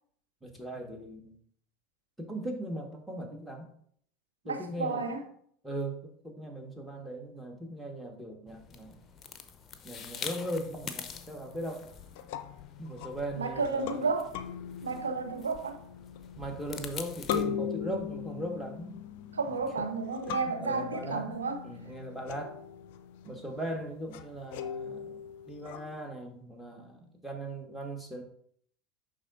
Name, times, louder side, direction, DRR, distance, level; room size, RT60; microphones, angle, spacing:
voice 1, 0.4-1.4 2.2-3.7 4.4-5.1 5.6-9.0 9.8-11.8 12.8-14.0 16.4-19.0 19.8-19.9 20.3-21.4 21.6-22.6 23.2-28.2, right 1 dB, ahead, 1.6 m, -39 dB
voice 2, 4.5-5.2 13.3-14.4 14.8-15.8 19.3-21.6, right 4 dB, 90° right, 0.7 m, -32 dB
sound 1, 8.5-17.4, left 6 dB, 35° left, 0.7 m, -46 dB
sound 2, 10.4-26.0, left 8 dB, 65° left, 0.4 m, -41 dB
11.0 x 3.8 x 2.6 m
hypercardioid pair, 80°, 0 cm